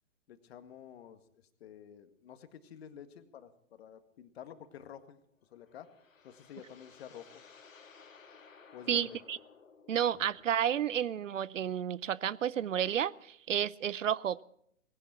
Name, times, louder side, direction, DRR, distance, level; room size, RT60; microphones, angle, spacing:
voice 1, 0.3-1.2 1.6-5.2 5.5-5.9 6.2-7.4 8.7-9.2, left 9 dB, 50° left, 1.9 m, -50 dB
sound 1, 5.4-10.6, left 5 dB, 75° left, 2.5 m, -58 dB
voice 2, 8.9-9.4 9.9-14.4, right 9 dB, 70° right, 0.7 m, -31 dB
19.0 x 16.5 x 4.5 m
figure-of-eight pair, 125°, 39 cm